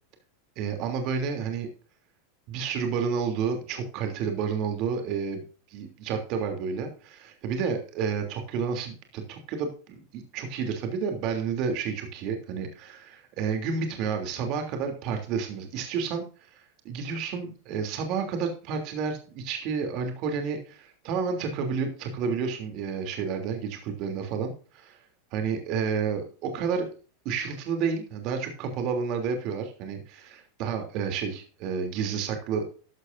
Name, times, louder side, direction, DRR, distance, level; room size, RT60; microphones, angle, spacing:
voice 1, 0.6-1.7 2.5-5.4 5.7-16.2 16.8-25.0 25.3-26.9 27.2-32.7, right 6 dB, 50° right, 5 dB, 3.1 m, -30 dB
13.5 x 12.0 x 2.7 m, 0.38 s
supercardioid pair, 135°, 0 cm